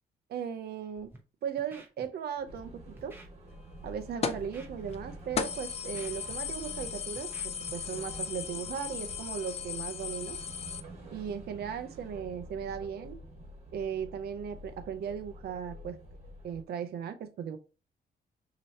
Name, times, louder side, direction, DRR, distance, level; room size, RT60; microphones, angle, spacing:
voice 1, 0.3-1.1 1.4-3.2 3.8-10.4 11.1-13.2 13.7-16.0 16.4-17.6, right 7 dB, 70° right, 8 dB, 0.7 m, -37 dB
Scratching (performance technique), 1.0-1.2 1.6-2.1 2.4-2.6 3.0-3.3 3.8-4.0 4.4-4.9 5.2-5.4 5.7-6.8 7.2-7.7 8.0-8.2, right 2 dB, 10° right, 1.0 m, -52 dB
sound 1, 2.5-16.6, right 1 dB, 40° right, 1.5 m, -48 dB
sound 2, 4.2-4.5 4.9-5.0 5.4-10.8, left 8 dB, 40° left, 0.4 m, -36 dB
6.3 x 2.9 x 2.8 m, 0.32 s
cardioid pair, 160°, 17 cm